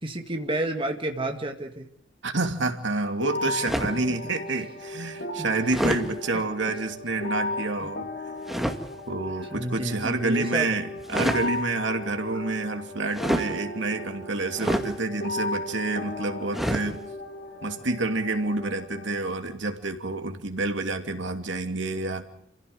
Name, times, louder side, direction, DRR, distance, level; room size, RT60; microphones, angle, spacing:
voice 1, 0.0-1.9 5.4-5.5 7.8-7.9 9.5-10.7, right 1 dB, 25° right, 3 dB, 2.0 m, -30 dB
voice 2, 2.2-8.1 9.1-17.0 17.6-22.2, right 3 dB, 70° right, 6 dB, 2.8 m, -28 dB
sound 1, 3.2-19.2, left 1 dB, 65° left, 3.9 m, -36 dB
sound 2, 3.6-4.0 5.7-6.1 8.5-8.8 11.0-11.5 13.1-13.5 14.6-14.9 16.5-16.9, equal, ahead, 2.2 m, -26 dB
28.5 x 16.5 x 7.9 m, 0.70 s
head